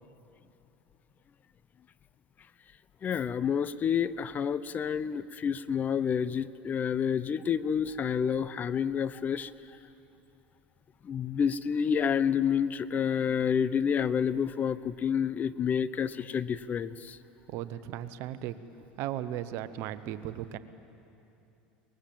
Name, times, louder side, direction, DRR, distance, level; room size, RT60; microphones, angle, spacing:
voice 1, 3.0-9.5 11.0-17.2, left 7 dB, 35° left, 16 dB, 0.6 m, -29 dB
voice 2, 17.5-18.6 19.0-20.6, right 12 dB, 60° right, 13 dB, 1.0 m, -36 dB
23.5 x 20.0 x 7.6 m, 2.8 s
hypercardioid pair, 90°, 5 cm